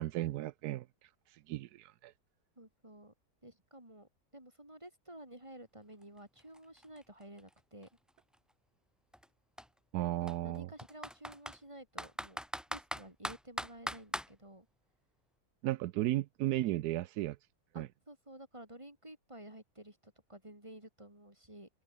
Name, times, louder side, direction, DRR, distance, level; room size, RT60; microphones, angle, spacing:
voice 1, 0.0-2.1 9.9-10.7 15.6-17.4 17.8-17.9, right 15 dB, 85° right, 1.1 m, -35 dB
voice 2, 2.6-3.1 3.4-7.9 10.2-12.4 12.7-14.7 17.7-21.7, right 1 dB, 20° right, 7.3 m, -52 dB
Computer keyboard, 6.0-6.1 6.4-8.3 9.1-9.3 9.6-9.7 10.3-11.6 12.0-14.3, equal, ahead, 1.2 m, -40 dB
omnidirectional pair, 1.6 m